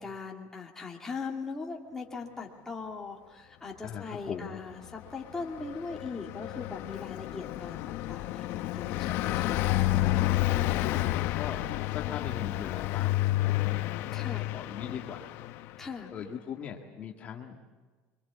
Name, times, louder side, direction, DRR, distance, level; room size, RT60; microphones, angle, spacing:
voice 1, 0.0-9.6 10.4-11.1 14.1-14.5 15.8-16.1, left 4 dB, 10° left, -1 dB, 2.5 m, -40 dB
voice 2, 3.8-4.6 9.2-9.8 10.8-11.6 11.9-13.8 14.2-15.3 15.6-15.8 16.1-17.8, left 8 dB, 30° left, 1 dB, 2.0 m, -40 dB
Car passing by, 4.9-15.9, left 16 dB, 60° left, 0.9 m, -30 dB
25.5 x 24.0 x 8.4 m, 1.3 s
cardioid pair, 165°, 5 cm